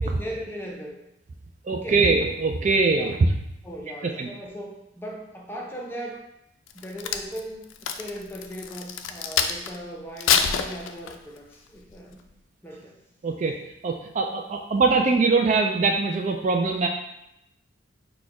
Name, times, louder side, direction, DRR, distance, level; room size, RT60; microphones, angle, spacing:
voice 1, 0.0-1.0 1.7-2.0 2.9-3.1 3.6-6.2 6.7-12.2 12.6-13.0, equal, 10° left, -1 dB, 0.6 m, -38 dB
voice 2, 1.6-3.3 4.0-4.3 13.2-13.6 13.8-16.9, right 3 dB, 40° right, 3 dB, 0.3 m, -22 dB
Crack, 6.7-9.8 10.2-11.4 11.9-12.1, left 7 dB, 85° left, 0.4 m, -26 dB
4.2 x 2.3 x 4.7 m, 0.82 s
head